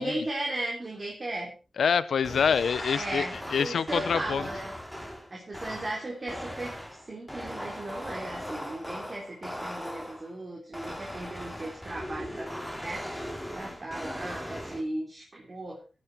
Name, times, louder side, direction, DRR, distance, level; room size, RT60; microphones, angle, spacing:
voice 1, 0.0-1.5 2.9-4.7 5.3-6.7 7.1-12.5 12.8-13.3 13.5-15.8, right 2 dB, 40° right, -2 dB, 3.9 m, -36 dB
voice 2, 1.8-3.3 3.5-4.5, left 6 dB, 85° left, 16 dB, 0.8 m, -26 dB
sound 1, 2.2-10.3 10.7-14.8, equal, ahead, 2.9 m, -39 dB
16.5 x 9.6 x 4.6 m, 0.34 s
wide cardioid pair, 90°, 0 cm